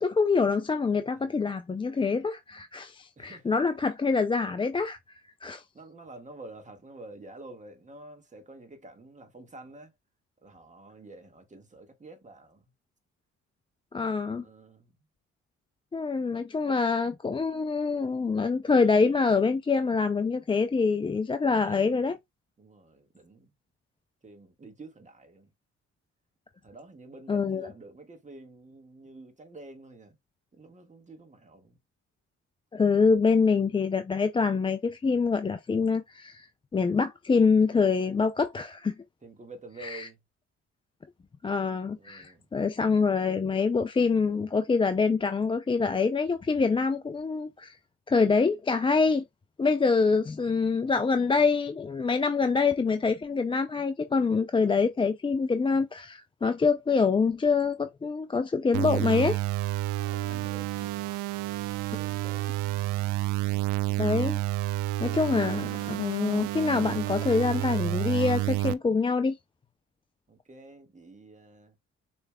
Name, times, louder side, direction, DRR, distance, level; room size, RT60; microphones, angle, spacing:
voice 1, 0.0-5.0 5.4-5.6 13.9-14.5 15.9-22.2 27.3-27.7 32.7-36.5 36.7-38.9 39.8-40.1 41.4-47.8 48.1-49.2 49.6-59.4 64.0-64.4 65.0-69.4, left 4 dB, 20° left, 0.4 m, -25 dB
voice 2, 3.2-3.6 5.7-9.9 10.4-12.7 14.4-15.1 21.5-22.1 22.6-23.5 24.2-25.5 26.6-30.2 30.5-31.8 39.2-40.2 42.0-42.5 50.4-50.6 60.0-61.0 61.9-62.6 70.3-71.7, right 2 dB, 25° right, 1.6 m, -49 dB
sound 1, 58.7-68.7, right 16 dB, 85° right, 0.5 m, -30 dB
6.9 x 3.3 x 2.2 m
cardioid pair, 90°, 30 cm